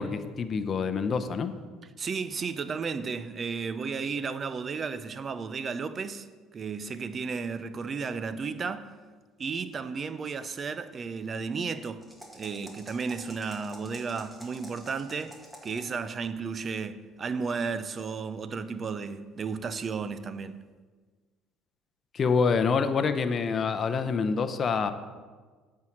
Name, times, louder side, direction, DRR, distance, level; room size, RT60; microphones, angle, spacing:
voice 1, 0.0-1.5 22.1-24.9, left 5 dB, 40° left, 0.7 m, -26 dB
voice 2, 2.0-6.3 6.5-8.9 9.4-12.0 12.3-15.4 15.6-20.6, right 5 dB, 35° right, 0.5 m, -33 dB
sound 1, 12.0-16.0, equal, 10° right, 1.8 m, -48 dB
8.4 x 4.7 x 7.2 m
supercardioid pair, 95°, 0 cm